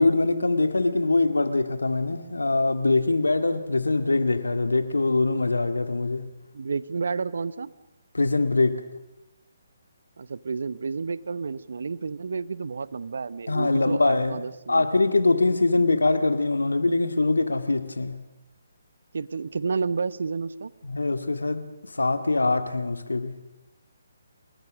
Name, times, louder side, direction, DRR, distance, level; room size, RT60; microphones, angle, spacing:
voice 1, 0.0-6.3 8.1-8.8 13.5-14.4 14.7-18.2 20.8-23.4, left 3 dB, 85° left, 2.1 m, -23 dB
voice 2, 6.5-7.7 10.2-14.9 15.7-15.8 19.1-20.7, right 4 dB, 65° right, 1.0 m, -30 dB
28.5 x 19.5 x 6.4 m
figure-of-eight pair, 145°, 0 cm